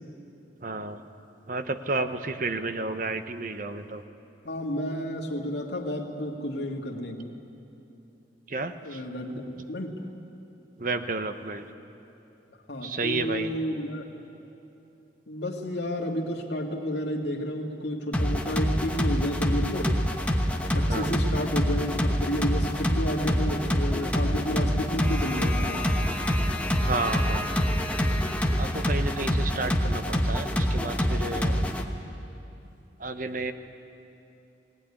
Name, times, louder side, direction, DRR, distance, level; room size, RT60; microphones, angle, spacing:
voice 1, 0.6-1.1 1.5-4.0 8.5-9.0 10.8-11.7 12.8-13.6 20.9-21.1 26.8-27.5 28.6-31.6 33.0-33.5, right 3 dB, 45° right, 9 dB, 0.9 m, -31 dB
voice 2, 4.4-7.3 8.8-9.9 12.7-14.0 15.3-19.9 20.7-25.9, equal, 65° left, 1 dB, 2.1 m, -31 dB
sound 1, 18.1-31.8, equal, 10° left, 1.1 m, -26 dB
19.0 x 18.0 x 10.0 m, 2.9 s
head